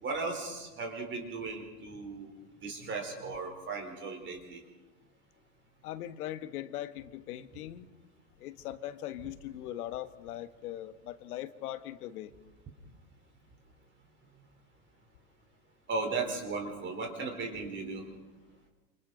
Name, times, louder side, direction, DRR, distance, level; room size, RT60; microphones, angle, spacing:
voice 1, 0.0-2.3 2.6-4.6 15.9-18.1, right 3 dB, 20° right, 3 dB, 3.9 m, -36 dB
voice 2, 5.8-7.9 8.4-12.3, left 13 dB, 60° left, 11 dB, 1.5 m, -40 dB
29.0 x 27.5 x 4.0 m, 1.2 s
hypercardioid pair, 135°, 50 cm